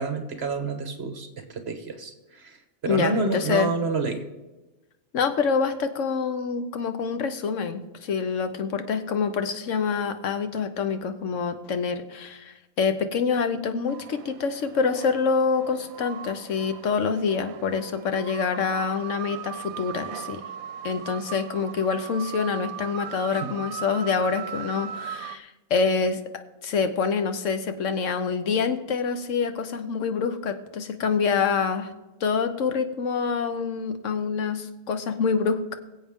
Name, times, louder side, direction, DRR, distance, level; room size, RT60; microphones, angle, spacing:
voice 1, 0.0-2.6 2.8-4.2 23.4-23.5, right 4 dB, 50° right, 6 dB, 1.4 m, -29 dB
voice 2, 2.8-3.7 5.1-20.4 20.8-31.9 32.2-35.7, left 5 dB, 65° left, 9 dB, 1.2 m, -26 dB
sound 1, 13.9-25.4, right 10 dB, 85° right, 1.1 m, -39 dB
23.0 x 7.8 x 3.6 m, 1.1 s
omnidirectional pair, 1.5 m